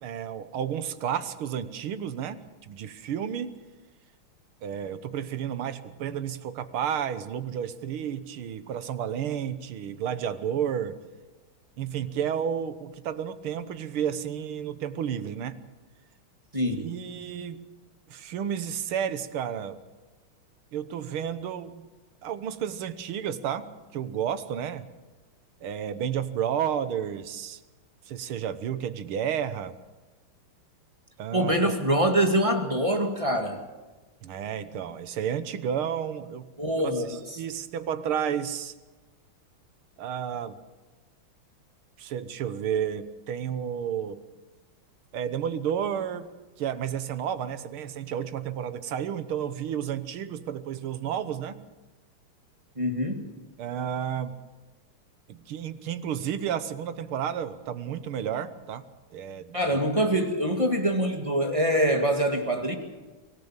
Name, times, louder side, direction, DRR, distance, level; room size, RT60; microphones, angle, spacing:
voice 1, 0.0-3.5 4.6-11.0 11.8-15.6 16.8-17.7 18.1-19.8 20.7-21.9 22.2-23.7 23.9-24.9 25.6-27.6 28.1-29.7 31.2-31.7 34.2-36.5 36.8-38.7 40.0-40.6 42.0-44.2 45.1-46.3 46.6-51.6 53.6-54.4 55.3-58.8 59.1-59.9, right 9 dB, 80° right, 12 dB, 2.0 m, -31 dB
voice 2, 16.5-16.8 31.3-33.6 36.6-37.4 52.8-53.3 59.5-62.7, right 1 dB, 15° right, 4 dB, 2.0 m, -24 dB
24.5 x 17.5 x 7.3 m, 1.2 s
omnidirectional pair, 2.3 m